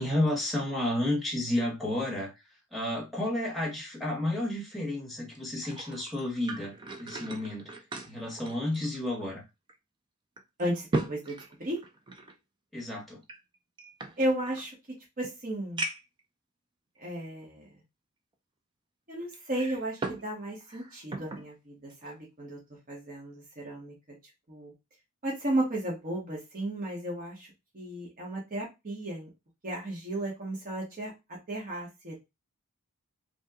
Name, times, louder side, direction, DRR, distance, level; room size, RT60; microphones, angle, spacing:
voice 1, 0.0-2.3 2.7-6.7 7.0-7.7 8.0-9.4 12.7-13.2, left 1 dB, ahead, -1 dB, 0.9 m, -31 dB
sound 1, 5.3-9.4 9.7-9.8 10.4-12.4 13.2-14.7 15.2-15.3 15.8-16.2 17.0-17.1 19.3-20.3 20.6-21.5 21.9-22.1, right 2 dB, 20° right, 0.3 m, -37 dB
voice 2, 10.6-11.8 14.2-14.7 15.2-15.8 17.0-17.7 19.1-22.6 22.9-24.2 24.5-24.7 25.2-27.5 27.7-29.3 29.6-31.1 31.5-32.2, right 1 dB, 40° right, -3 dB, 0.8 m, -34 dB
2.7 x 2.2 x 3.4 m, 0.23 s
head